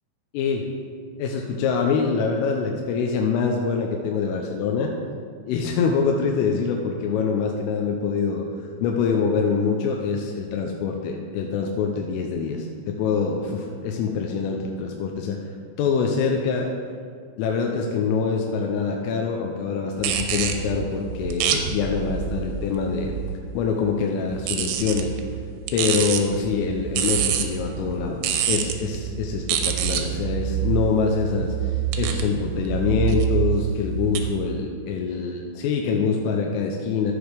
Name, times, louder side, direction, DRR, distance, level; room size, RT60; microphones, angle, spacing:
voice 1, 0.3-0.6 1.2-4.9 5.5-8.5 8.8-15.4 15.8-16.7 17.4-23.2 23.5-25.1 25.7-37.1, left 5 dB, 85° left, 1 dB, 3.2 m, -25 dB
sound 1, 20.0-23.5 24.3-34.2, right 9 dB, 85° right, 2.9 m, -27 dB
13.0 x 8.0 x 3.3 m, 2.1 s
omnidirectional pair, 5.9 m